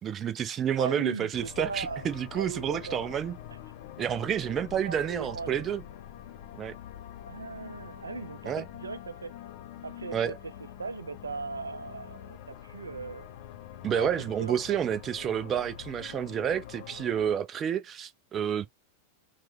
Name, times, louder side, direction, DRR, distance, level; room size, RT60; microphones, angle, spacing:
voice 1, 0.0-3.3 4.0-5.8 6.5-6.7 8.4-8.7 10.1-10.4 13.8-18.7, right 9 dB, 25° right, 0.5 m, -29 dB
voice 2, 0.8-2.0 2.3-3.1 4.8-5.6 7.3-9.3 9.8-10.5 10.8-13.3 13.9-14.1 14.4-14.8, right 4 dB, 75° right, 0.4 m, -38 dB
sound 1, 1.3-17.4, left 11 dB, 50° left, 0.7 m, -45 dB
4.5 x 2.1 x 3.4 m
figure-of-eight pair, 90°, 0 cm